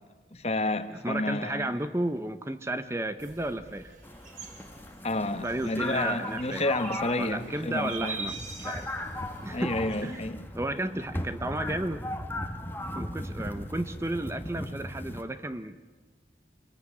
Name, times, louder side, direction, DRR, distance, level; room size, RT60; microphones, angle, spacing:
voice 1, 0.3-1.7 5.0-8.2 9.5-10.4, left 2 dB, 35° left, 9 dB, 1.4 m, -30 dB
voice 2, 0.9-4.0 5.4-6.6 7.2-8.9 9.4-9.8 10.0-10.3 10.5-12.0 12.9-15.8, right 1 dB, 15° right, 10 dB, 0.7 m, -33 dB
sound 1, 3.2-10.3, right 4 dB, 45° right, 3.2 m, -44 dB
sound 2, 4.0-15.2, left 1 dB, 10° left, 1.4 m, -37 dB
26.0 x 21.0 x 9.6 m, 1.4 s
head